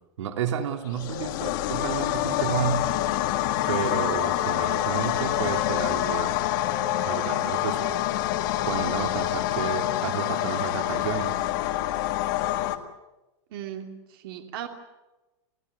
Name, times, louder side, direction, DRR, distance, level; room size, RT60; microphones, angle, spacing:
voice 1, 0.2-2.8 3.7-6.3 7.1-7.8 8.7-11.4, right 8 dB, 85° right, 6 dB, 2.8 m, -31 dB
sound 1, 0.9-12.8, left 14 dB, 45° left, 1.7 m, -26 dB
Wind instrument woodwind instrument, 1.5-5.9 6.6-10.3, right 1 dB, 70° right, 7.3 m, -43 dB
voice 2, 13.5-14.7, right 10 dB, 50° right, 5 dB, 2.7 m, -37 dB
29.0 x 16.0 x 9.6 m, 1.1 s
supercardioid pair, 175°, 15 cm